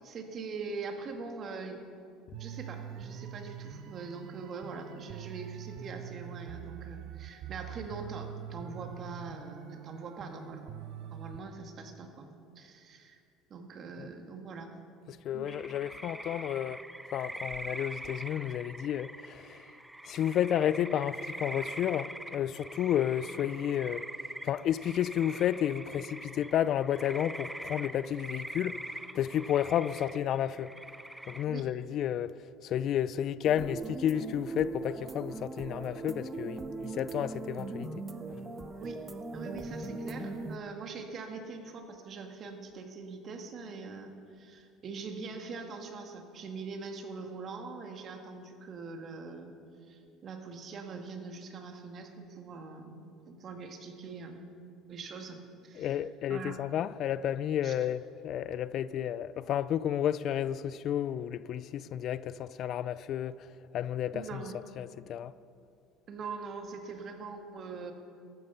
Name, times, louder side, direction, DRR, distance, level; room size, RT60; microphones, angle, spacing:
voice 1, 0.0-1.8 2.4-10.8 11.1-12.3 12.6-13.2 13.5-14.8 15.3-15.5 31.5-31.7 38.8-39.0 39.3-49.5 49.9-54.4 54.9-56.0 56.3-56.6 57.6-57.9 64.1-64.6 66.1-67.9, right 4 dB, 45° right, 1.8 m, -43 dB
sound 1, 2.3-11.4, right 10 dB, 65° right, 0.7 m, -44 dB
voice 2, 15.1-16.8 17.1-19.6 20.1-24.0 24.4-28.8 29.1-30.7 31.3-32.3 32.6-37.9 55.8-63.4 63.7-64.4 64.8-65.3, left 10 dB, 55° left, 0.4 m, -31 dB
sound 2, 15.5-31.4, right 1 dB, 5° right, 0.5 m, -43 dB
sound 3, 33.5-40.6, right 3 dB, 20° right, 0.9 m, -39 dB
14.5 x 12.0 x 5.6 m
supercardioid pair, 105°, 0 cm